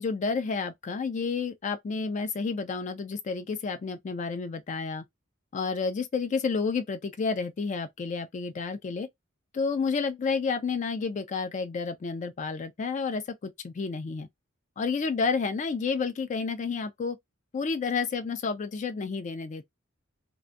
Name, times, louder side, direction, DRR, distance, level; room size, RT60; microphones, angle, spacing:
voice 1, 0.0-5.0 5.5-9.1 9.5-14.3 14.8-17.2 17.5-19.6, left 4 dB, 35° left, 0.3 m, -30 dB
2.5 x 2.2 x 2.5 m
head